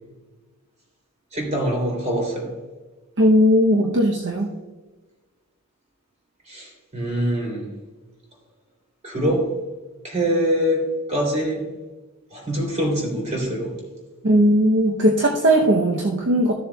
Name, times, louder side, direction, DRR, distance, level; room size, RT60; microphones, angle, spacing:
voice 1, 1.3-2.5 6.5-7.7 9.0-9.5 10.0-10.8 11.1-11.6 12.3-13.7, equal, 30° right, -1 dB, 3.1 m, -24 dB
voice 2, 3.2-4.5 14.2-16.5, equal, 55° right, 0 dB, 0.8 m, -18 dB
14.5 x 7.1 x 2.3 m, 1.3 s
head